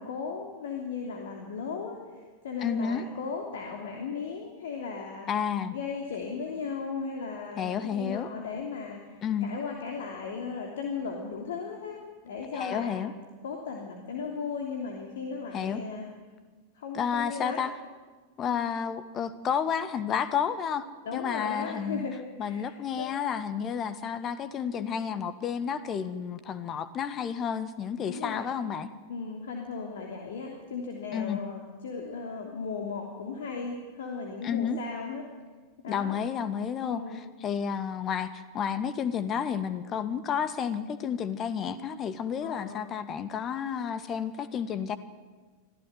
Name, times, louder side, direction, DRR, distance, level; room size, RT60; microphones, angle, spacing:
voice 1, 0.0-5.3 5.7-13.2 13.4-16.1 16.7-17.6 18.5-18.7 21.0-22.7 23.0-23.1 24.8-24.9 28.0-28.4 29.1-35.2 35.8-36.2 36.8-37.2 42.4-42.9, left 5 dB, 60° left, 1 dB, 3.1 m, -36 dB
voice 2, 2.6-3.0 5.3-5.7 7.6-8.3 9.2-9.5 12.5-13.1 15.5-15.8 16.9-17.7 18.4-20.9 21.1-22.1 22.4-28.9 31.1-31.4 34.4-34.8 35.9-37.0 37.4-45.0, left 7 dB, 30° left, 13 dB, 1.6 m, -31 dB
25.0 x 15.5 x 9.6 m, 1.4 s
figure-of-eight pair, 90°, 0 cm